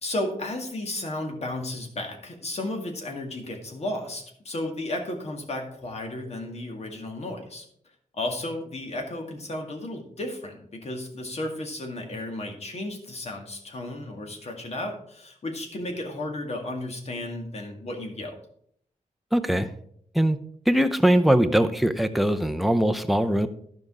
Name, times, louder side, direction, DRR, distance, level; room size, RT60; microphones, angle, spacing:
voice 1, 0.0-7.6 8.1-18.4, left 1 dB, 50° left, 3 dB, 2.0 m, -33 dB
voice 2, 19.3-19.7 20.1-20.4 20.7-23.5, right 1 dB, ahead, 8 dB, 0.6 m, -21 dB
13.0 x 5.3 x 4.9 m, 0.66 s
wide cardioid pair, 155°, 14 cm